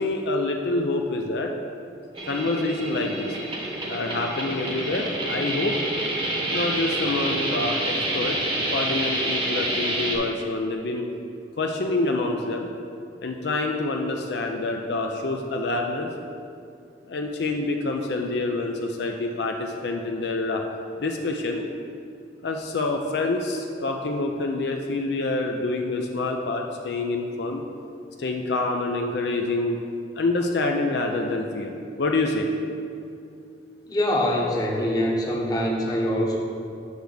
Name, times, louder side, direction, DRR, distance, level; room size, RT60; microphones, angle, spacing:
voice 1, 0.0-1.5 2.3-3.4 3.9-5.8 6.5-8.4 8.7-11.1 11.6-12.7 13.2-16.1 17.1-20.6 21.0-21.6 22.4-27.6 28.2-29.8 30.2-31.7 32.0-32.5, left 2 dB, 65° left, 2 dB, 0.5 m, -26 dB
sound 1, 2.1-10.2, right 1 dB, 25° right, 0.9 m, -28 dB
voice 2, 33.9-36.4, equal, 20° left, -2 dB, 0.9 m, -24 dB
8.0 x 3.4 x 6.5 m, 2.5 s
head